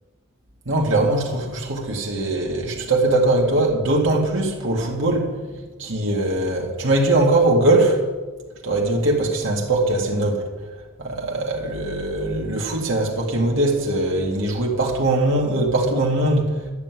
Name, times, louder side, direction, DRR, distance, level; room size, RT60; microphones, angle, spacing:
voice 1, 0.7-5.3 5.8-8.0 8.6-10.5 11.0-16.6, right 2 dB, 65° right, -2 dB, 2.2 m, -21 dB
12.0 x 6.7 x 9.3 m, 1.3 s
head